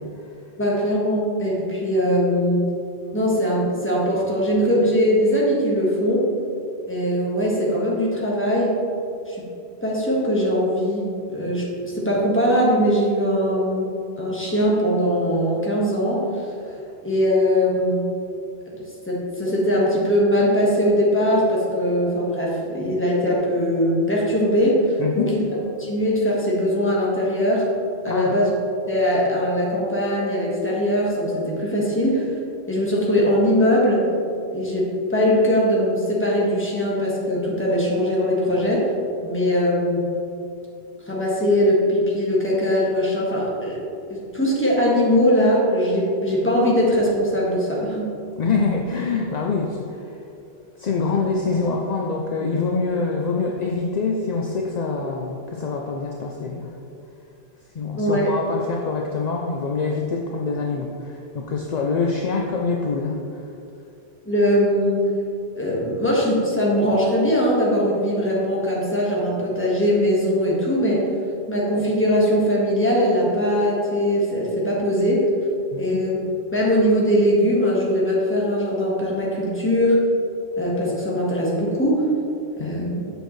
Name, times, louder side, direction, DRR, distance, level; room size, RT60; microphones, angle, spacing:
voice 1, 0.6-2.7 3.1-6.2 6.9-8.7 9.3-9.5 9.8-16.5 17.0-18.1 19.1-25.4 25.8-27.7 28.0-28.5 28.9-32.2 32.7-34.0 34.5-38.9 39.2-40.0 41.0-43.8 44.1-48.1 58.0-58.3 64.2-65.0 65.5-71.1 71.5-75.3 75.8-76.2 76.5-80.0 80.6-82.1 82.6-83.0, equal, 10° left, -5 dB, 1.4 m, -21 dB
voice 2, 25.0-25.4 28.1-28.3 48.4-50.1 50.8-56.7 57.7-63.4 75.7-76.0 82.6-82.9, left 4 dB, 55° left, 0 dB, 0.5 m, -25 dB
7.9 x 6.3 x 3.2 m, 2.6 s
omnidirectional pair, 1.2 m